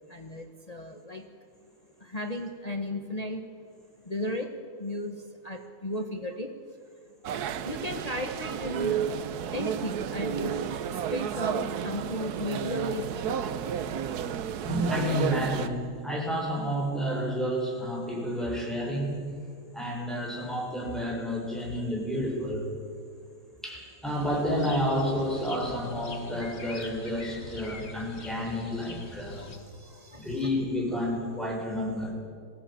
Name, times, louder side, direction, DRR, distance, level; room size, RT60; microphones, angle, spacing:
voice 1, 0.1-1.3 2.1-3.4 4.1-4.5 4.8-5.2 5.4-6.5 7.6-9.1 9.5-10.5 11.1-13.6 29.4-29.5 29.8-30.3, left 1 dB, 25° left, 4 dB, 1.3 m, -34 dB
sound 1, 7.2-15.7, right 8 dB, 75° right, 1.4 m, -32 dB
voice 2, 14.6-19.3 19.7-22.7 23.6-29.5 30.1-32.1, equal, ahead, -2 dB, 6.0 m, -30 dB
sound 2, 24.1-29.6, left 3 dB, 40° left, 2.0 m, -44 dB
21.5 x 16.0 x 8.9 m, 2.2 s
omnidirectional pair, 1.7 m